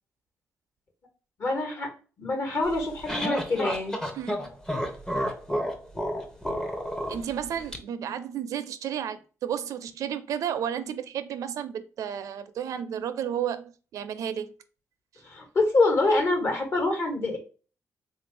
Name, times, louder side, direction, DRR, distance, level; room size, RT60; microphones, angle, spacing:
voice 1, 1.4-1.9 2.2-4.0 15.2-17.4, left 2 dB, 45° left, 1.3 m, -25 dB
sound 1, 2.7-7.8, equal, 10° left, 0.6 m, -31 dB
voice 2, 7.1-14.5, right 9 dB, 75° right, 0.4 m, -32 dB
3.7 x 2.5 x 3.2 m
cardioid pair, 145°, 6 cm